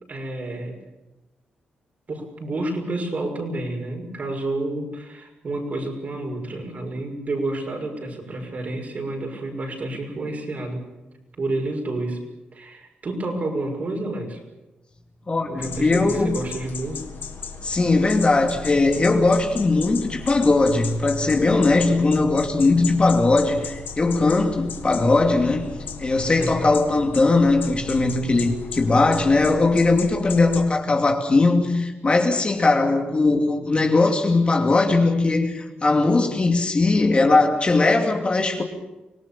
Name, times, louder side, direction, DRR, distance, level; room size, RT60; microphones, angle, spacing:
voice 1, 0.1-0.8 2.1-10.9 11.4-12.2 12.5-14.4 15.4-17.1 26.4-26.7, right 2 dB, 45° right, 6.2 m, -29 dB
voice 2, 15.3-16.4 17.6-25.7 26.0-38.6, left 3 dB, 30° left, 2.7 m, -19 dB
sound 1, 15.6-30.7, left 6 dB, 75° left, 1.9 m, -36 dB
25.5 x 18.0 x 7.2 m
cardioid pair, 80°, 3 cm